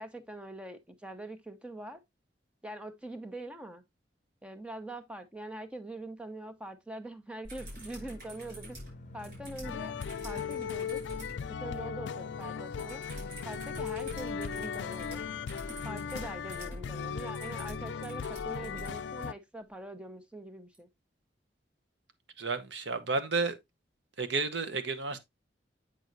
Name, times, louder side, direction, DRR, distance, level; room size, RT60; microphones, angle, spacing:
voice 1, 0.0-2.0 2.6-3.8 4.4-8.8 9.1-10.0 10.2-11.0 11.6-13.0 13.4-15.3 15.8-20.9, right 1 dB, 5° right, 0.8 m, -43 dB
sound 1, 7.4-11.4 12.8-19.0 20.7-20.8, equal, 55° right, 5.6 m, -47 dB
sound 2, 7.6-16.1, left 2 dB, 45° left, 0.7 m, -50 dB
sound 3, 9.6-19.3, left 7 dB, 80° left, 0.4 m, -37 dB
voice 2, 22.4-23.6 24.2-25.2, right 3 dB, 80° right, 0.9 m, -31 dB
7.9 x 6.2 x 2.6 m
head